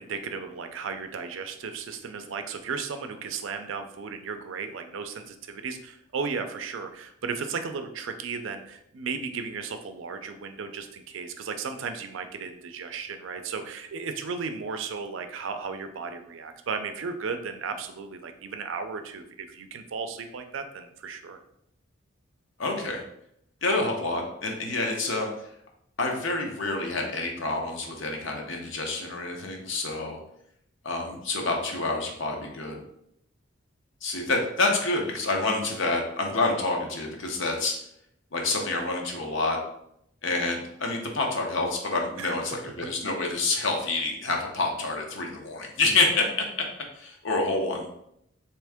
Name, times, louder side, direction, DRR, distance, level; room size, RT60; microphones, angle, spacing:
voice 1, 0.0-21.4 42.2-42.4, right 5 dB, 70° right, 7 dB, 0.4 m, -35 dB
voice 2, 22.6-23.0 23.6-25.3 26.0-30.2 30.8-32.8 34.0-37.7 38.3-39.6 40.2-46.7 47.0-47.9, left 3 dB, 70° left, 1 dB, 0.8 m, -28 dB
3.5 x 2.9 x 3.4 m, 0.76 s
head